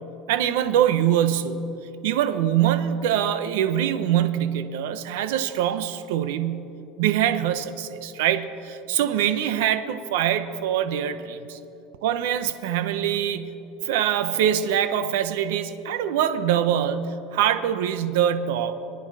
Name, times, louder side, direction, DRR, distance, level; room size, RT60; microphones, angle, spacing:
voice 1, 0.3-1.7 2.0-6.6 7.0-11.6 12.0-13.6 13.8-18.8, right 10 dB, 80° right, 10 dB, 1.0 m, -24 dB
26.5 x 9.8 x 4.9 m, 2.8 s
supercardioid pair, 150°, 0 cm